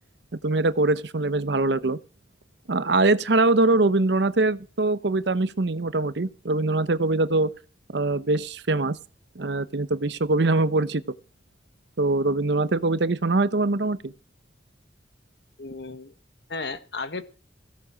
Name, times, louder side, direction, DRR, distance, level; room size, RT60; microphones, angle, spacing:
voice 1, 0.4-2.0 2.7-7.5 7.9-9.0 9.4-11.0 12.0-14.1, right 2 dB, 65° right, 0.8 m, -23 dB
voice 2, 15.6-16.1 16.5-17.2, left 3 dB, 65° left, 1.4 m, -34 dB
16.5 x 7.2 x 6.3 m
head